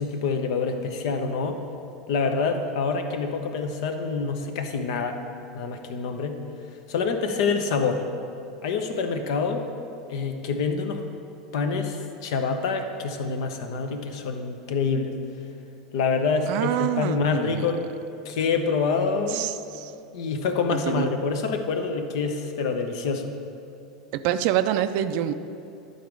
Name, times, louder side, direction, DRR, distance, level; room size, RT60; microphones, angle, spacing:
voice 1, 0.0-1.6 2.1-5.2 5.5-6.4 6.9-8.1 8.6-9.7 10.1-11.0 11.5-15.1 15.9-17.8 18.2-19.5 20.1-23.3, left 4 dB, 65° left, 6 dB, 0.8 m, -26 dB
voice 2, 16.5-17.7 19.3-19.9 20.7-21.1 24.1-25.3, right 11 dB, 55° right, 11 dB, 0.4 m, -26 dB
11.5 x 4.0 x 4.7 m, 2.7 s
hypercardioid pair, 90°, 3 cm